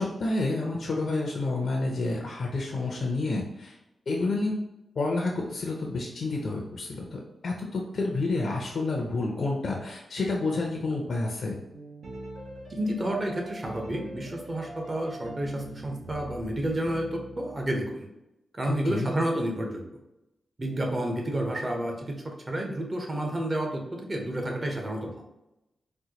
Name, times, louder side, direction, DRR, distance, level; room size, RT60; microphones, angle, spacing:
voice 1, 0.0-3.7 4.1-4.6 5.0-11.6 18.7-19.1, left 2 dB, 65° left, -1 dB, 0.6 m, -29 dB
sound 1, 11.7-17.8, right 1 dB, 70° right, 1.0 m, -43 dB
voice 2, 12.7-18.1 18.6-19.8 20.6-25.1, right 1 dB, 30° right, 1 dB, 0.9 m, -30 dB
4.3 x 2.2 x 2.9 m, 0.91 s
cardioid pair, 65°, 0 cm